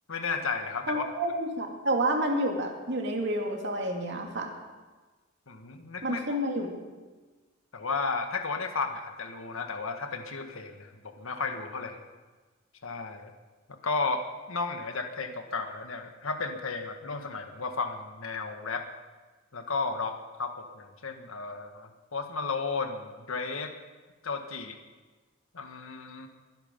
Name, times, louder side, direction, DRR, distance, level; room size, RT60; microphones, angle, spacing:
voice 1, 0.1-1.0 5.5-6.4 7.7-12.0 12.8-13.3 13.7-14.2 14.5-18.8 19.5-23.7 24.2-24.8 25.5-26.3, left 4 dB, 80° left, 5 dB, 1.6 m, -33 dB
voice 2, 0.9-4.5 6.0-6.8, right 1 dB, 60° right, 1 dB, 2.4 m, -29 dB
22.5 x 11.0 x 5.3 m, 1.3 s
head